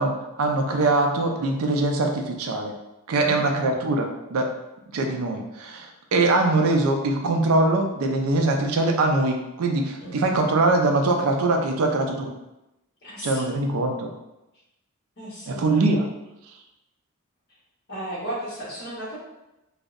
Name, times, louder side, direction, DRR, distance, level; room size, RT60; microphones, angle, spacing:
voice 1, 0.0-2.7 3.1-4.5 4.9-12.3 13.2-14.1 15.5-16.1 16.5-16.6, right 2 dB, 85° right, 2 dB, 0.4 m, -22 dB
voice 2, 3.2-3.5 10.0-10.1 13.0-13.4 15.2-15.7 17.9-19.2, right 1 dB, 50° left, -7 dB, 1.0 m, -34 dB
2.6 x 2.0 x 2.4 m, 0.92 s
head